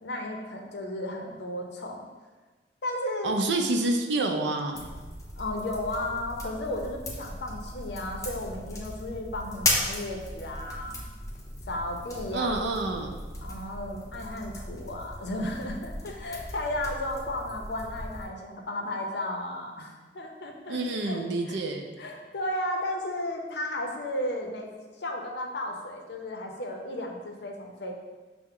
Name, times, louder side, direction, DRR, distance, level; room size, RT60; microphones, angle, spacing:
voice 1, 0.0-2.1 2.8-3.3 5.4-11.0 11.7-12.6 13.4-20.8 21.0-21.2 21.5-21.6 22.0-24.7 25.0-27.9, left 1 dB, 65° left, 2 dB, 0.6 m, -34 dB
voice 2, 3.2-4.9 12.3-13.2 20.7-22.0, right 2 dB, 70° right, 4 dB, 0.4 m, -28 dB
sound 1, 4.7-18.3, left 1 dB, 15° left, 0.6 m, -36 dB
5.6 x 2.1 x 3.6 m, 1.3 s
head